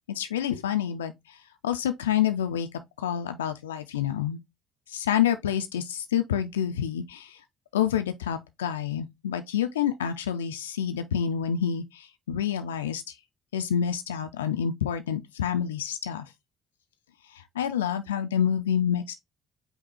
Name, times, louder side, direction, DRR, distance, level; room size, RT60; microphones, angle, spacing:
voice 1, 0.1-1.4 1.6-2.7 3.0-4.4 4.9-7.4 7.7-13.1 13.5-16.3 17.3-19.1, left 9 dB, 75° left, 0.3 m, -28 dB
5.3 x 2.1 x 4.1 m
figure-of-eight pair, 50°, 0 cm